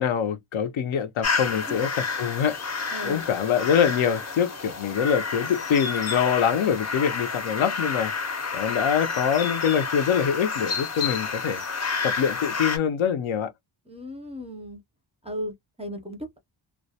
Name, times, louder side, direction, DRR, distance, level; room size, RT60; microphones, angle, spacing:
voice 1, 0.0-1.9 2.2-8.1 8.5-11.7 12.0-13.5, left 7 dB, 70° left, 0.6 m, -24 dB
sound 1, 1.2-12.8, left 5 dB, 35° left, 0.6 m, -30 dB
voice 2, 2.9-3.2 13.9-14.8 15.2-16.4, equal, 15° right, 0.5 m, -36 dB
2.3 x 2.1 x 2.7 m
wide cardioid pair, 120°, 49 cm